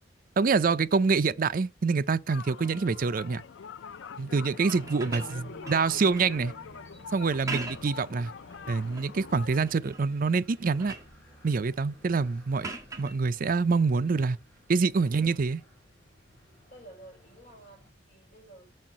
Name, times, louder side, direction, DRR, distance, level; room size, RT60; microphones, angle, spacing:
voice 1, 0.4-3.4 4.2-6.5 7.1-8.3 8.7-10.9 11.4-12.7 13.0-14.4 14.7-15.6, right 4 dB, 45° right, 0.4 m, -26 dB
sound 1, 2.3-9.6, left 6 dB, 70° left, 0.4 m, -44 dB
voice 2, 4.7-5.4 15.0-15.5 16.7-18.8, equal, 35° left, 5.3 m, -51 dB
sound 2, 4.7-17.9, right 2 dB, 10° left, 4.6 m, -53 dB
sound 3, 4.7-6.4 7.3-8.0 8.5-9.1 9.6-10.1 10.4-11.2 12.6-13.2 14.9-15.1, right 3 dB, 15° right, 1.7 m, -40 dB
6.3 x 4.3 x 6.0 m
head